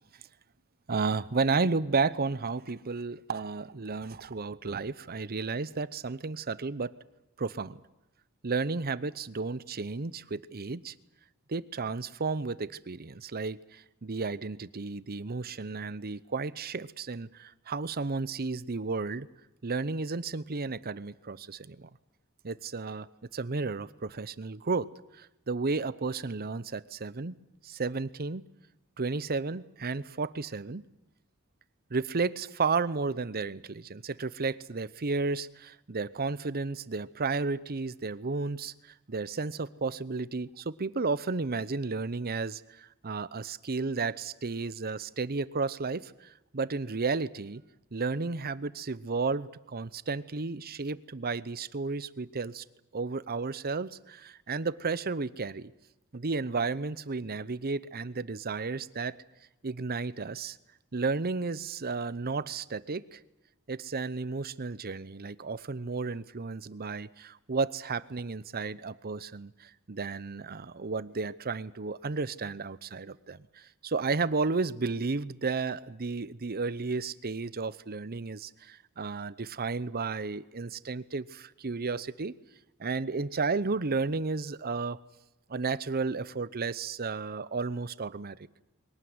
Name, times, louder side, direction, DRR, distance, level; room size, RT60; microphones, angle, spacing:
voice 1, 0.9-6.9 7.4-7.8 8.4-10.9 11.5-19.3 19.6-21.9 22.4-23.1 23.3-24.9 25.2-27.4 27.6-28.4 29.0-30.8 31.9-38.7 39.1-47.6 47.9-52.6 52.9-55.7 56.1-59.2 59.6-60.6 60.9-63.2 63.7-82.3 82.8-85.0 85.5-88.4, right 4 dB, 45° right, 17 dB, 0.8 m, -33 dB
22.5 x 18.5 x 9.6 m, 0.92 s
head